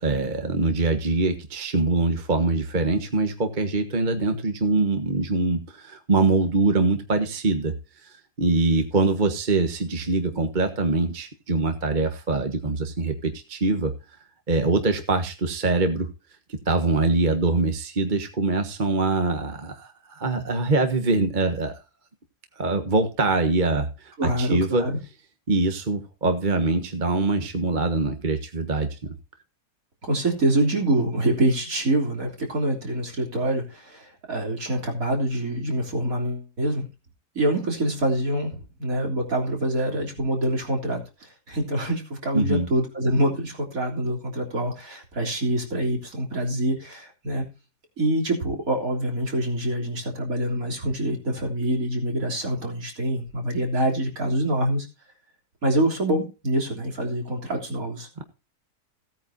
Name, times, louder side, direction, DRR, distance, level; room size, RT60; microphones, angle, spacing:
voice 1, 0.0-7.7 8.0-8.1 8.4-13.9 14.5-16.1 16.5-21.7 22.6-24.9 25.5-29.1 42.3-42.7 58.2-58.3, right 3 dB, 30° right, 6 dB, 1.5 m, -23 dB
voice 2, 24.2-25.0 30.1-36.9 37.4-38.5 38.8-41.0 41.5-47.4 48.0-54.9 55.6-58.1, right 1 dB, 55° right, 2 dB, 3.8 m, -25 dB
17.0 x 9.2 x 2.8 m, 0.30 s
omnidirectional pair, 1.7 m